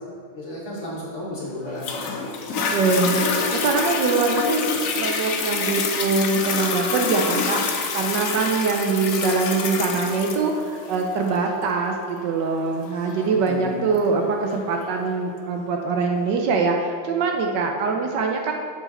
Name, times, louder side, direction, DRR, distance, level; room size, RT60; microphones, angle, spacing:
voice 1, 0.3-2.5 13.3-13.8, left 1 dB, 40° left, -5 dB, 1.9 m, -34 dB
Toilet flush, 1.8-14.8 15.4-15.5, left 5 dB, 65° left, 0.8 m, -27 dB
voice 2, 2.7-4.7 5.0-7.6 7.9-18.5, right 4 dB, 70° right, 2 dB, 1.2 m, -23 dB
7.1 x 6.0 x 4.2 m, 2.4 s
omnidirectional pair, 2.1 m